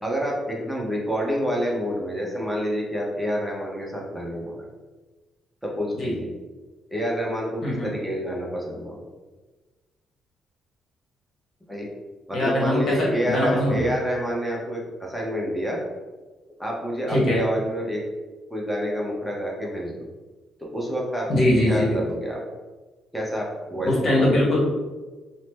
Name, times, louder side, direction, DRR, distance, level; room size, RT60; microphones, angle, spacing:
voice 1, 0.0-4.7 5.6-6.3 6.9-9.0 11.7-11.9 12.3-15.8 16.6-18.0 18.5-20.1 20.6-21.3 21.7-22.4 23.1-24.5, equal, ahead, -3 dB, 0.8 m, -28 dB
voice 2, 12.3-13.8 17.1-17.4 21.3-22.0 23.8-24.7, left 1 dB, 55° left, -5 dB, 1.1 m, -21 dB
2.7 x 2.1 x 3.3 m, 1.2 s
cardioid pair, 90°, 0 cm